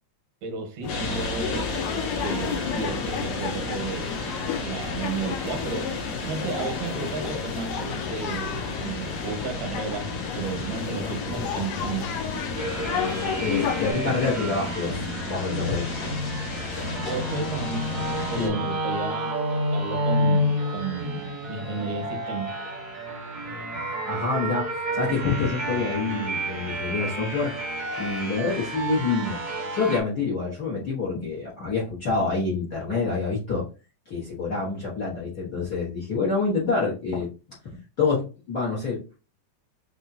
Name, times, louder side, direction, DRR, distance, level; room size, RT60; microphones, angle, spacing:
voice 1, 0.4-4.3 4.6-12.1 17.0-22.5, right 4 dB, 80° right, 2.6 m, -33 dB
sound 1, 0.8-13.9, left 8 dB, 85° left, 2.2 m, -32 dB
sound 2, 0.9-18.5, left 2 dB, 65° left, 2.8 m, -34 dB
voice 2, 11.0-11.6 13.4-15.9 18.4-18.6 23.5-23.6 24.1-27.6 28.0-29.4 29.7-33.6 34.0-37.3 38.0-39.0, left 4 dB, 40° left, 1.5 m, -27 dB
sound 3, 12.6-30.0, equal, 50° right, 1.2 m, -30 dB
6.7 x 2.8 x 2.8 m
omnidirectional pair, 3.6 m